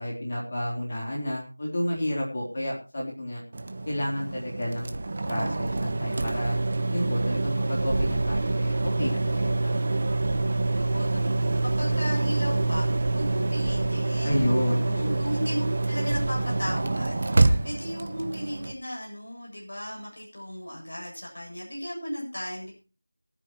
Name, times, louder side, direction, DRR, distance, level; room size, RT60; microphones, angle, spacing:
voice 1, 0.0-3.4 3.9-5.0 5.3-6.6 6.9-10.0 14.2-15.3, left 1 dB, 30° left, -2 dB, 3.5 m, -31 dB
sound 1, 3.5-18.7, right 2 dB, 30° right, 0.9 m, -26 dB
voice 2, 10.7-22.7, equal, 55° left, -1 dB, 7.4 m, -36 dB
22.0 x 9.4 x 3.0 m, 0.33 s
figure-of-eight pair, 175°, 0 cm